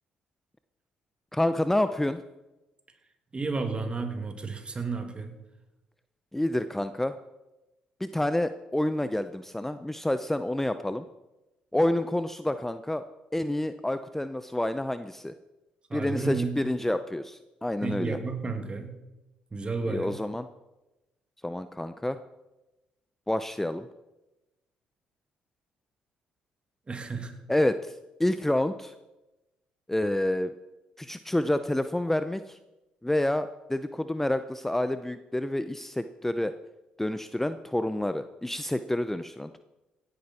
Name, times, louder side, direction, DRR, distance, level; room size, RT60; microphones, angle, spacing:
voice 1, 1.3-2.2 6.3-7.2 8.0-11.0 11.7-13.0 13.3-15.3 15.9-18.2 19.9-20.5 21.4-22.2 23.3-23.9 27.5-27.9 28.2-28.9 29.9-30.5 31.0-32.6 33.0-36.5 37.0-39.6, left 1 dB, 10° left, 11 dB, 0.7 m, -28 dB
voice 2, 3.3-5.4 15.9-16.7 17.8-19.0 19.5-20.2 26.9-27.3, right 4 dB, 30° right, 5 dB, 2.6 m, -32 dB
17.0 x 10.5 x 4.4 m, 1.0 s
hypercardioid pair, 50°, 3 cm